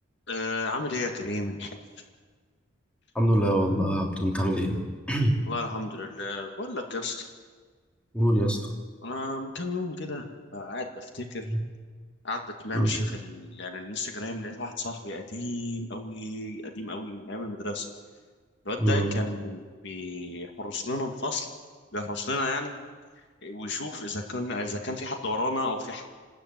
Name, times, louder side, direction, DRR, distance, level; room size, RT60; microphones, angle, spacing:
voice 1, 0.3-1.7 5.5-7.3 9.0-10.2 10.5-11.5 12.2-17.9 18.6-21.5 21.9-22.7 23.4-26.0, left 2 dB, 60° left, 3 dB, 2.2 m, -33 dB
voice 2, 3.1-5.4 8.1-8.7 11.4-11.6 12.7-13.1 18.8-19.2, equal, 5° left, 0 dB, 3.0 m, -25 dB
28.5 x 13.5 x 9.3 m, 1.5 s
head